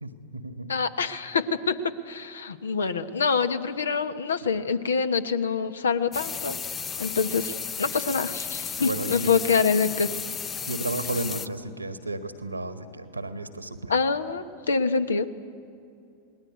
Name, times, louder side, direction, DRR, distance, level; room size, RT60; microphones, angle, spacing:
voice 1, 0.0-0.8 8.8-9.3 10.7-13.9, right 2 dB, 85° right, 10 dB, 1.6 m, -33 dB
voice 2, 0.7-6.6 7.0-10.1 13.9-15.3, left 5 dB, 70° left, 11 dB, 1.1 m, -26 dB
sound 1, 6.1-11.5, left 6 dB, 25° left, 0.8 m, -34 dB
28.0 x 20.0 x 9.4 m, 2.5 s
figure-of-eight pair, 90°, 0 cm